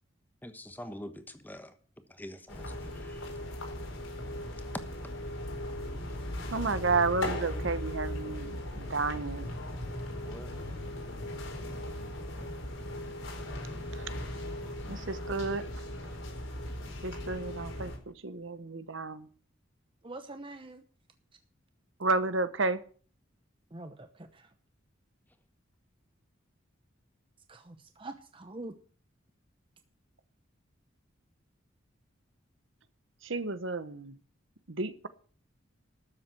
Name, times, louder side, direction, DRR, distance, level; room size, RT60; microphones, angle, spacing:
voice 1, 0.4-1.7 2.1-3.3 10.2-10.5, left 1 dB, 10° left, 1.2 m, -45 dB
sound 1, 2.5-18.0, left 1 dB, 85° left, 4.6 m, -38 dB
voice 2, 6.5-9.5 13.9-14.1 14.9-15.6 17.0-19.3 22.0-22.8 33.2-34.2 34.7-35.1, right 3 dB, 70° right, 1.0 m, -31 dB
voice 3, 20.0-20.8 23.7-24.5 27.5-28.8, right 2 dB, 25° right, 0.8 m, -45 dB
13.0 x 7.4 x 7.8 m
head